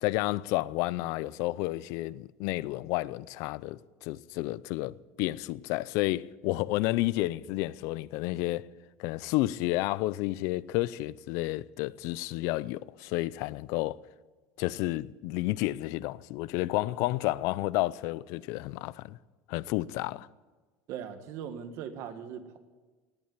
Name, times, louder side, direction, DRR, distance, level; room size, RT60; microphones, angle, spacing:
voice 1, 0.0-8.7 9.0-14.0 14.6-19.2 19.5-20.3, left 18 dB, 65° left, 0.5 m, -31 dB
voice 2, 20.9-22.6, right 8 dB, 55° right, 1.6 m, -39 dB
18.5 x 8.7 x 9.0 m
cardioid pair, 150°, 6 cm